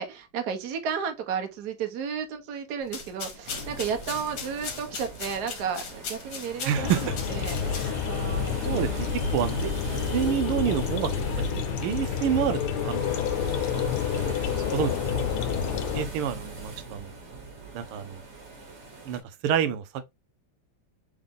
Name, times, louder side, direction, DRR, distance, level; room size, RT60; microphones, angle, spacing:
voice 1, 0.0-9.0 13.7-13.8 14.1-14.9, right 7 dB, 55° right, 1.4 m, -33 dB
sound 1, 2.8-8.2, left 5 dB, 60° left, 1.7 m, -39 dB
sound 2, 3.5-19.2, right 3 dB, 35° right, 1.5 m, -40 dB
voice 2, 6.6-7.2 8.6-9.1 9.3-9.7 10.1-13.0 14.7-15.3 15.9-17.1 17.7-18.2 19.1-19.8, right 9 dB, 90° right, 1.6 m, -28 dB
sound 3, 6.7-16.1, left 7 dB, 90° left, 1.6 m, -29 dB
4.1 x 3.6 x 3.6 m
omnidirectional pair, 2.3 m